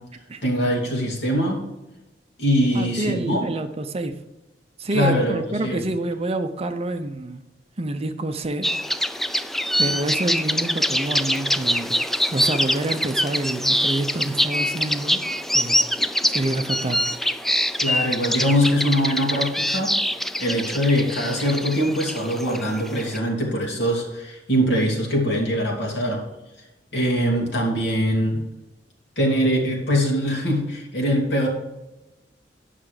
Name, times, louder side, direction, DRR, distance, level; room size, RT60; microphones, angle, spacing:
voice 1, 0.4-1.6 2.4-3.5 4.9-5.8 17.8-20.0 20.4-26.2 26.9-28.4 29.2-31.5, equal, 70° left, 2.7 m, -22 dB
voice 2, 2.7-4.2 4.8-7.4 7.8-8.6 9.8-12.0 12.3-15.2 15.5-15.9 16.3-17.0, right 2 dB, 35° right, 0.6 m, -27 dB
sound 1, 8.6-23.2, equal, ahead, 0.3 m, -24 dB
10.0 x 5.8 x 4.9 m
head